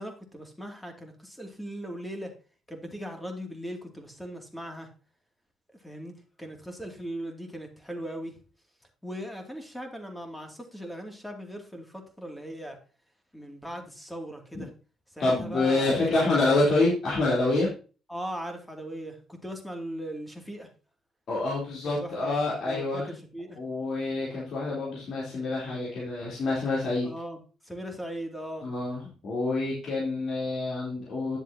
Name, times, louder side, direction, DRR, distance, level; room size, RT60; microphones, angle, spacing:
voice 1, 0.0-2.3 2.7-4.9 5.8-8.4 9.0-12.8 13.3-14.7 15.1-16.5 18.1-20.7 22.0-23.0 23.3-23.6 27.0-27.4 27.6-28.7, equal, 5° left, 4 dB, 2.5 m, -39 dB
voice 2, 15.2-17.7 21.3-23.1 23.6-27.1 28.6-31.4, left 2 dB, 60° left, -6 dB, 3.6 m, -27 dB
10.5 x 7.4 x 2.8 m, 0.36 s
cardioid pair, 90°, 0 cm